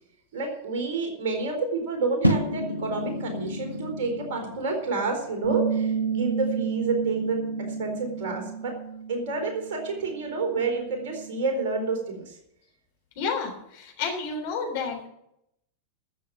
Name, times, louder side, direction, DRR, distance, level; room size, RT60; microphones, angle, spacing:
voice 1, 0.3-8.7 9.1-12.4, right 3 dB, 50° right, 2 dB, 4.2 m, -29 dB
sound 1, 2.2-8.5, equal, 90° left, 1.0 m, -32 dB
Bass guitar, 5.4-11.7, right 6 dB, 90° right, 1.4 m, -31 dB
voice 2, 13.2-13.5 14.0-15.1, left 5 dB, 50° left, 2 dB, 3.7 m, -29 dB
13.5 x 7.7 x 7.2 m, 0.77 s
figure-of-eight pair, 90°, 0 cm